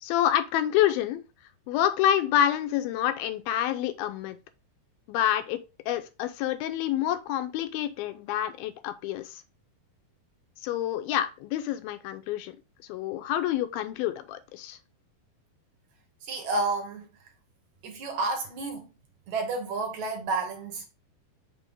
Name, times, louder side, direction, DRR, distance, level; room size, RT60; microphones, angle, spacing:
voice 1, 0.0-1.2 1.7-4.4 5.1-9.4 10.6-12.6 12.9-14.8, left 11 dB, 85° left, 2.5 m, -27 dB
voice 2, 16.2-17.1 17.8-18.9 19.3-20.9, right 3 dB, 65° right, 2.1 m, -30 dB
6.2 x 3.0 x 5.3 m
omnidirectional pair, 4.3 m